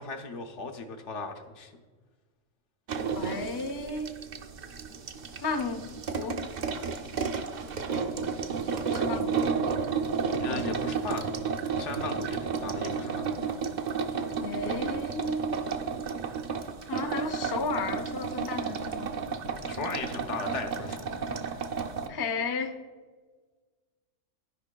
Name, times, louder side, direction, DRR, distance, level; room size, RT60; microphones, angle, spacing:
voice 1, 0.0-1.7 9.1-9.2 10.4-11.3 11.8-13.3 14.6-14.8 19.6-21.2, left 4 dB, 70° left, 4 dB, 1.1 m, -37 dB
sound 1, 2.9-22.1, right 5 dB, 55° right, 0.5 m, -32 dB
voice 2, 3.1-4.1 5.4-6.4 8.9-9.5 10.5-10.7 14.4-15.6 16.9-19.1 22.1-22.7, left 3 dB, 35° left, 5 dB, 0.3 m, -33 dB
14.0 x 5.2 x 2.3 m, 1.4 s
omnidirectional pair, 1.3 m